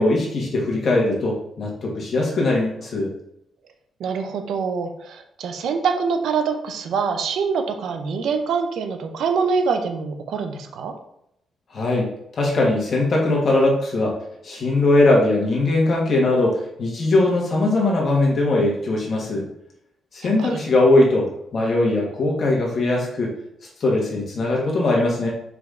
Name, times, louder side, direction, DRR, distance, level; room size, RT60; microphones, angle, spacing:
voice 1, 0.0-3.1 11.7-12.1 12.3-14.1 14.4-19.4 20.1-21.3 21.5-23.3 23.8-25.3, left 2 dB, 40° left, -2 dB, 1.1 m, -20 dB
voice 2, 4.0-10.9 20.2-20.6, right 5 dB, 70° right, 6 dB, 0.5 m, -25 dB
4.7 x 3.3 x 2.5 m, 0.78 s
cardioid pair, 170°, 0 cm